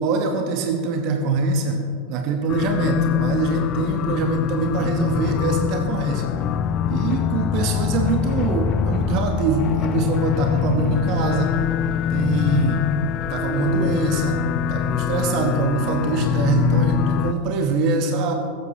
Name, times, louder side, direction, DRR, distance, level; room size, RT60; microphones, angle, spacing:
voice 1, 0.0-1.8 2.1-6.3 6.9-11.6 12.1-12.8 13.3-18.3, right 3 dB, 40° right, 4 dB, 1.2 m, -23 dB
sound 1, 2.5-17.3, left 8 dB, 35° left, 0.5 m, -23 dB
16.0 x 13.5 x 3.2 m, 2.3 s
figure-of-eight pair, 90°, 0 cm